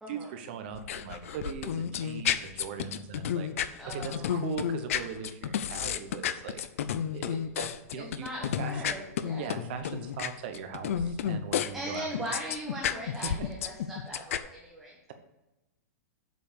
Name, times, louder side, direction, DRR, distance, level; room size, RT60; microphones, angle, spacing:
voice 1, 0.1-3.5 3.9-8.3 8.6-9.1 9.4-12.4 13.4-13.5, right 7 dB, 35° right, 7 dB, 1.0 m, -40 dB
sound 1, 0.7-11.7 12.0-14.4, left 9 dB, 55° left, 0.6 m, -31 dB
voice 2, 3.8-4.3 8.0-9.5 11.7-15.0, equal, 5° right, -4 dB, 1.1 m, -39 dB
7.6 x 5.2 x 6.8 m, 1.0 s
supercardioid pair, 175°, 9 cm